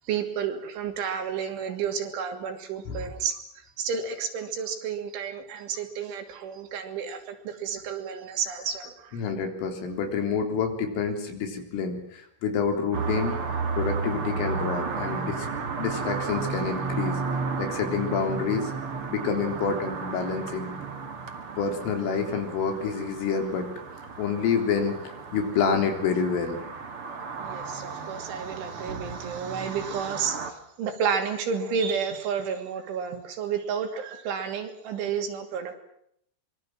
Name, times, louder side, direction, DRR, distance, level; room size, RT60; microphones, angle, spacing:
voice 1, 0.1-3.4 3.8-9.2 27.4-35.8, right 6 dB, 70° right, 6 dB, 5.1 m, -31 dB
voice 2, 9.1-13.4 13.8-17.2 17.6-18.7 19.1-20.7 21.6-23.7 24.2-26.6, left 5 dB, 75° left, 5 dB, 6.2 m, -28 dB
sound 1, 12.9-30.5, right 4 dB, 45° right, 1.9 m, -33 dB
25.5 x 23.5 x 7.6 m, 0.72 s
omnidirectional pair, 5.9 m